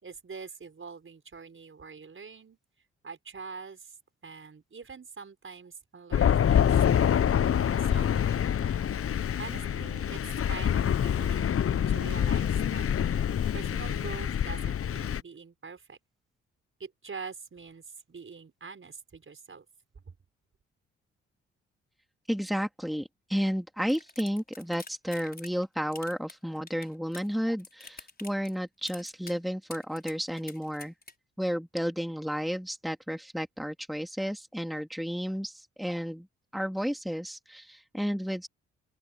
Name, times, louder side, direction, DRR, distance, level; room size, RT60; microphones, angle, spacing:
voice 1, 0.0-2.6 3.0-3.9 4.2-7.1 7.5-8.8 9.4-10.2 10.5-12.9 13.5-16.0 16.8-19.7, right 5 dB, 40° right, 5.2 m, -44 dB
Thunder, 6.1-15.2, left 9 dB, 45° left, 1.0 m, -26 dB
voice 2, 22.3-30.9 31.4-36.3 36.5-38.5, equal, ahead, 2.8 m, -32 dB
sound 1, 23.9-25.6 25.9-27.3 27.6-28.5 28.9-29.4 29.7-31.1, left 3 dB, 30° left, 5.3 m, -47 dB
open air
hypercardioid pair, 45°, 31 cm